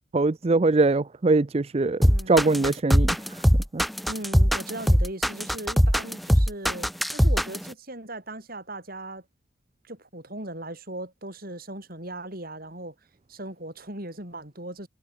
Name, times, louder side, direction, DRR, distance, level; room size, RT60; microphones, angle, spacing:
voice 1, 0.1-2.0 2.3-3.2 3.7-3.8, right 3 dB, 30° right, 0.5 m, -22 dB
sound 1, 2.0-7.7, equal, ahead, 0.8 m, -20 dB
voice 2, 2.0-2.5 4.1-9.2 9.8-13.0 13.3-14.9, right 1 dB, 45° right, 7.0 m, -38 dB
head